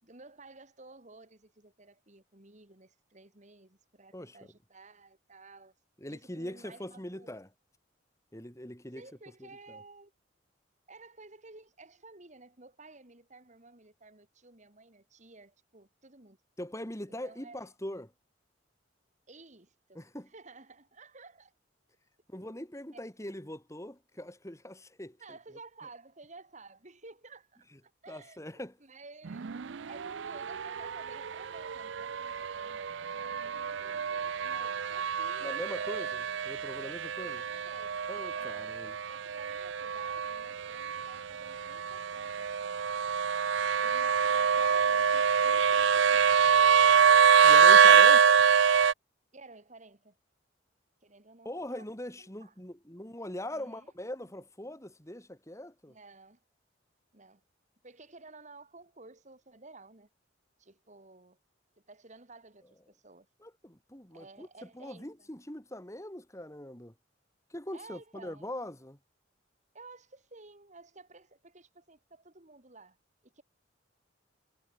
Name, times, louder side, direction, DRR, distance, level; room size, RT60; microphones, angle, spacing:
voice 1, 0.0-5.7 6.1-7.4 8.9-10.1 10.9-16.4 17.2-17.7 19.3-21.5 25.2-28.4 28.8-29.6 29.9-36.2 37.2-38.0 38.3-38.6 39.1-42.8 43.8-46.6 48.0-48.5 49.3-50.1 51.0-51.8 52.2-52.5 53.5-53.9 55.9-56.4 57.1-57.4 57.8-60.1 60.6-61.4 61.9-63.3 64.1-65.3 67.7-68.5 69.7-73.0 73.2-73.4, right 3 dB, 40° right, 2.7 m, -53 dB
voice 2, 6.0-7.5 8.3-9.1 9.4-9.8 16.6-18.1 19.9-20.3 22.3-25.4 28.1-28.7 35.4-37.4 38.1-39.0 47.4-48.4 51.4-56.0 63.4-64.5 64.7-66.9 67.5-69.0, left 1 dB, 15° left, 2.9 m, -42 dB
sound 1, 29.3-48.9, right 7 dB, 70° right, 0.5 m, -25 dB
head